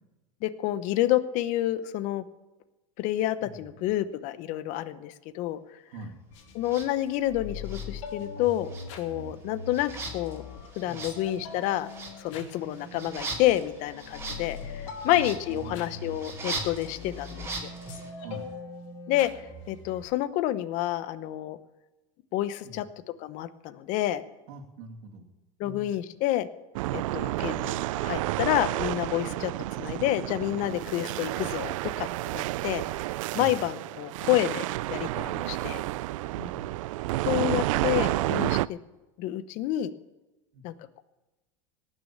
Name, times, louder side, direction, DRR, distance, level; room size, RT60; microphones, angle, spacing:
voice 1, 0.4-2.2 3.0-5.6 6.5-8.7 8.9-10.4 10.8-11.9 12.2-17.5 19.1-19.3 19.7-21.6 22.3-22.9 23.2-24.2 25.6-26.5 26.9-29.5 29.8-32.8 33.3-35.8 37.3-38.8 39.2-39.9 40.6-41.0, left 14 dB, 50° left, 13 dB, 0.9 m, -29 dB
voice 2, 3.4-3.8 5.9-6.2 10.8-11.2 15.0-16.2 18.2-18.5 22.6-22.9 24.5-25.2 25.6-25.9 33.3-33.6 36.3-36.7 40.5-40.6, right 2 dB, 65° right, 1 dB, 2.5 m, -44 dB
sound 1, 6.3-20.0, left 4 dB, 70° left, 2.8 m, -42 dB
sound 2, 6.6-6.9 7.6-8.4 8.6-18.1, right 3 dB, 15° right, 2.7 m, -40 dB
sound 3, 26.7-38.7, right 17 dB, 80° right, 0.4 m, -30 dB
18.0 x 6.5 x 8.7 m, 1.1 s
supercardioid pair, 140°, 17 cm